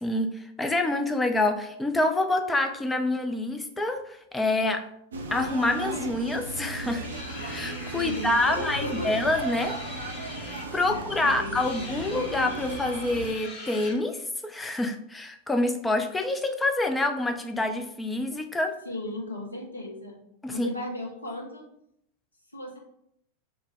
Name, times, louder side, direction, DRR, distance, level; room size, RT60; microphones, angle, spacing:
voice 1, 0.0-4.8 5.3-7.1 7.5-9.7 10.7-18.7 20.4-20.7, left 2 dB, 10° left, 5 dB, 0.3 m, -27 dB
sound 1, 5.1-13.3, right 2 dB, 70° right, 0.4 m, -36 dB
sound 2, 7.0-13.9, left 2 dB, 45° left, 0.8 m, -42 dB
voice 2, 7.9-9.1 10.9-11.9 18.8-20.2 20.5-21.6 22.5-22.8, left 1 dB, 80° left, -1 dB, 0.7 m, -35 dB
3.0 x 2.1 x 3.5 m, 0.73 s
figure-of-eight pair, 90°, 0 cm